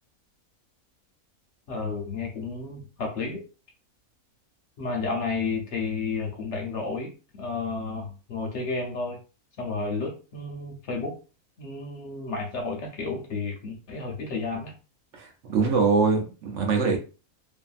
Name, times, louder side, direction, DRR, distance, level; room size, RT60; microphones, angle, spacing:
voice 1, 1.7-3.4 4.8-9.2 9.6-11.2 11.6-14.7, left 4 dB, 60° left, 1 dB, 1.0 m, -32 dB
voice 2, 15.1-17.0, right 4 dB, 65° right, 2 dB, 0.8 m, -23 dB
2.6 x 2.6 x 2.3 m, 0.33 s
omnidirectional pair, 1.5 m